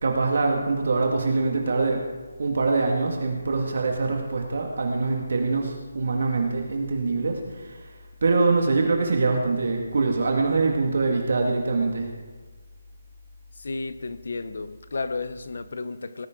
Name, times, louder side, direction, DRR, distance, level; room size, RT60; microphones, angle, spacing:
voice 1, 0.0-2.0 2.4-7.9 8.2-12.1, right 3 dB, 50° right, 1 dB, 2.1 m, -24 dB
voice 2, 13.6-16.3, left 3 dB, 55° left, 12 dB, 1.0 m, -33 dB
19.0 x 15.5 x 3.9 m, 1.4 s
hypercardioid pair, 175°, 0 cm